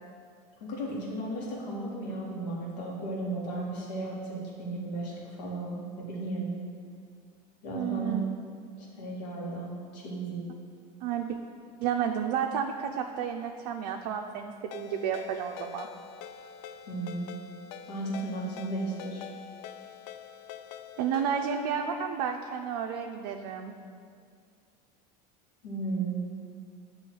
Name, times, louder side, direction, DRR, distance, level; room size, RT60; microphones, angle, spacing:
voice 1, 0.6-6.5 7.6-8.2 8.8-9.7 9.9-10.4 16.9-17.3 17.9-19.3 25.6-26.2, right 2 dB, 90° left, -4 dB, 1.7 m, -35 dB
voice 2, 7.7-8.3 11.0-11.4 11.8-15.9 21.0-23.7, right 8 dB, 70° right, 3 dB, 0.5 m, -31 dB
Ringtone, 14.7-21.6, left 9 dB, 65° left, 0.4 m, -45 dB
8.3 x 3.1 x 6.2 m, 2.2 s
supercardioid pair, 105°, 21 cm